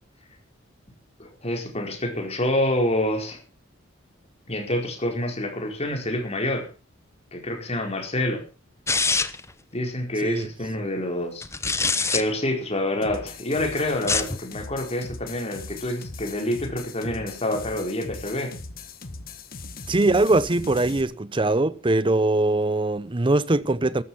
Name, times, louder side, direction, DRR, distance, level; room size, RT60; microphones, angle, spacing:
voice 1, 1.2-3.4 4.5-6.7 7.3-8.4 9.7-11.5 12.1-18.5, left 1 dB, 30° left, 4.7 m, -27 dB
sound 1, 8.9-9.5 11.4-12.2 13.9-14.4, left 4 dB, 15° left, 1.0 m, -24 dB
sound 2, 13.0-21.0, left 3 dB, 50° left, 1.6 m, -40 dB
voice 2, 19.9-24.0, right 2 dB, 25° right, 0.7 m, -22 dB
14.0 x 13.0 x 5.7 m
head